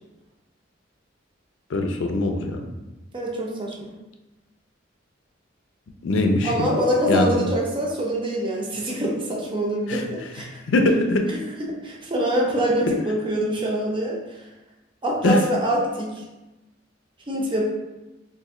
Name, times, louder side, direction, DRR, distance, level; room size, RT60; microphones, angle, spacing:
voice 1, 1.7-2.6 6.0-6.7 7.1-7.4 9.9-10.0 10.7-11.2 15.2-15.4, left 2 dB, 75° left, 4 dB, 0.4 m, -21 dB
voice 2, 3.1-3.9 6.4-10.5 11.8-14.4 15.0-16.2 17.3-17.6, equal, 25° right, -3 dB, 0.6 m, -24 dB
3.0 x 2.6 x 3.6 m, 1.0 s
head